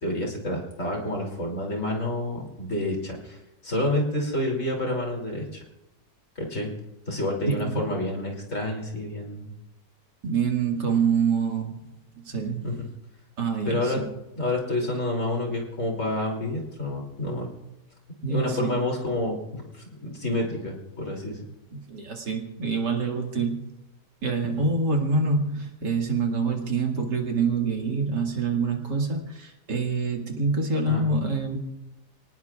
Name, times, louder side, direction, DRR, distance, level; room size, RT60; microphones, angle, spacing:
voice 1, 0.0-3.4 3.6-5.6 6.3-6.7 7.1-9.5 12.6-12.7 13.6-14.0 14.4-17.5 18.3-21.4 24.4-24.6 30.9-31.1, left 1 dB, 45° left, -1 dB, 3.3 m, -29 dB
voice 2, 7.5-7.8 10.2-11.8 12.3-12.7 13.4-14.1 18.2-18.8 21.7-23.6 24.2-31.6, right 4 dB, 75° right, 1 dB, 2.7 m, -26 dB
29.5 x 18.5 x 2.4 m, 0.97 s
omnidirectional pair, 1.9 m